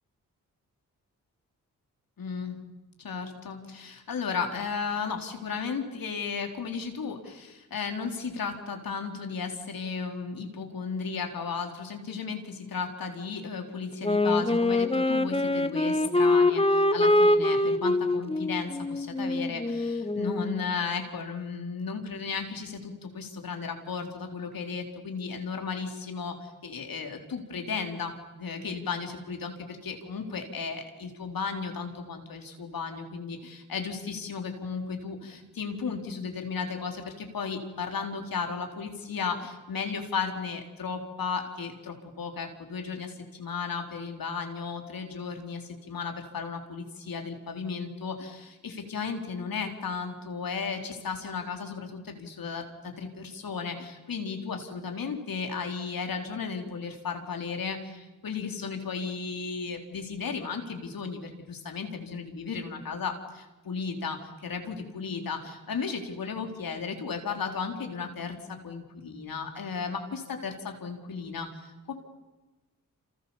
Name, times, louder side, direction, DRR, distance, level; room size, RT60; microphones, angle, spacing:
voice 1, 2.2-2.6 3.0-71.9, left 5 dB, 70° left, 3 dB, 4.3 m, -35 dB
Wind instrument woodwind instrument, 14.0-20.6, left 2 dB, 15° left, 1.6 m, -24 dB
28.5 x 27.5 x 7.4 m, 1.2 s
cardioid pair, 50°, 35 cm